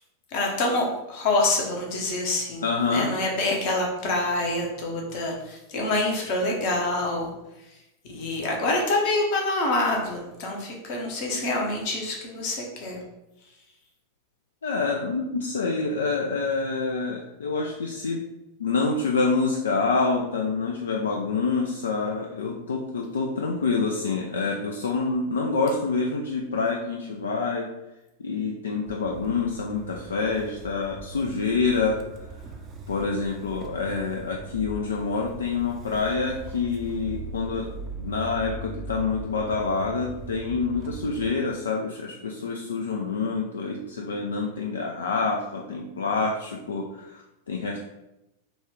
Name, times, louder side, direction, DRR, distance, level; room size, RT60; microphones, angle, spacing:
voice 1, 0.3-7.3 7.7-7.8 8.0-13.0, left 2 dB, 45° left, 0 dB, 0.9 m, -26 dB
voice 2, 2.6-3.1 14.6-18.2 18.6-27.7 28.2-32.0 32.3-32.4 32.9-37.7 38.0-47.8, left 4 dB, 70° left, 0 dB, 0.3 m, -27 dB
Motor vehicle (road) / Engine starting, 28.9-41.3, right 3 dB, 30° right, 0.5 m, -39 dB
3.8 x 2.3 x 3.3 m, 0.92 s
figure-of-eight pair, 90°, 0 cm